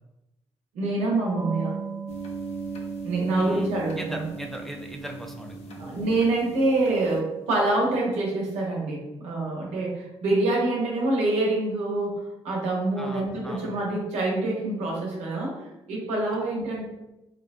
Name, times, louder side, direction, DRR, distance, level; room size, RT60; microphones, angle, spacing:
voice 1, 0.7-1.8 3.0-4.3 5.8-15.6 15.9-16.9, right 2 dB, 90° right, -2 dB, 0.7 m, -26 dB
sound 1, 1.3-7.5, right 6 dB, 85° left, 0.8 m, -39 dB
sound 2, 2.1-7.2, right 3 dB, 70° left, 0.4 m, -40 dB
voice 2, 3.3-3.7 3.9-5.9 13.0-13.6, right 1 dB, 5° left, 2 dB, 0.4 m, -38 dB
2.7 x 2.1 x 2.4 m, 0.95 s
supercardioid pair, 65°, 11 cm